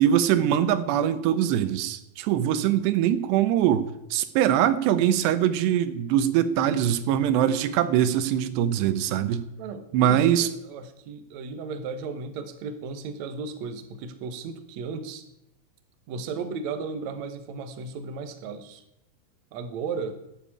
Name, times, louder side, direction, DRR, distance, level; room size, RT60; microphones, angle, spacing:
voice 1, 0.0-3.8 4.1-9.5 9.9-10.5, right 10 dB, 90° right, 12 dB, 3.1 m, -22 dB
voice 2, 9.6-15.2 16.1-18.8 19.5-20.2, right 4 dB, 65° right, 8 dB, 1.9 m, -35 dB
12.5 x 9.6 x 8.7 m, 0.88 s
omnidirectional pair, 4.8 m